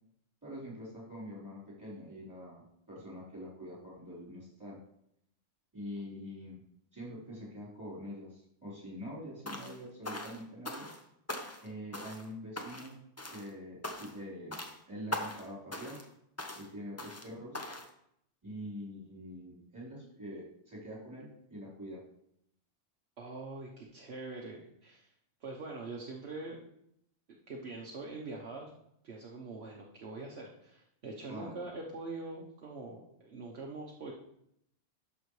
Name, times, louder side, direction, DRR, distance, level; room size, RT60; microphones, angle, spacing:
voice 1, 0.4-4.8 5.7-6.6 6.9-10.9 11.6-13.0 13.3-14.6 14.9-16.0 16.6-17.6 18.4-22.0 31.3-31.7, equal, 15° right, -7 dB, 3.8 m, -45 dB
sound 1, 9.5-9.8 10.1-11.0 11.3-11.7 11.9-12.3 12.6-12.9 13.2-13.5 13.8-14.2 14.5-14.8 15.1-15.5 15.7-16.1 16.4-16.7 17.0-17.3 17.5-17.9, left 1 dB, 15° left, 0.7 m, -41 dB
voice 2, 23.2-25.1 25.4-26.7 27.3-28.7 29.0-34.1, right 3 dB, 60° right, -1 dB, 1.2 m, -44 dB
12.0 x 6.1 x 3.2 m, 0.74 s
omnidirectional pair, 1.3 m